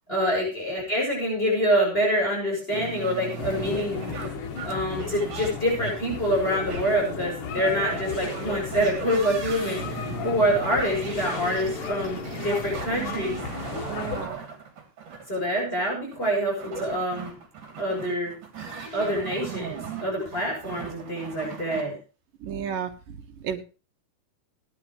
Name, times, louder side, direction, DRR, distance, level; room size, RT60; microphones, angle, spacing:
voice 1, 0.1-4.1 4.6-13.4 15.3-17.4 17.8-18.3 18.9-22.0, equal, 15° left, -2 dB, 7.1 m, -26 dB
sound 1, 2.7-21.8, right 5 dB, 70° right, 4.6 m, -37 dB
sound 2, 3.4-14.3, left 6 dB, 70° left, 3.2 m, -35 dB
voice 2, 13.9-14.4 22.4-23.2 23.4-23.6, right 8 dB, 90° right, 4 dB, 3.0 m, -32 dB
18.0 x 11.0 x 3.2 m, 0.34 s
omnidirectional pair, 3.8 m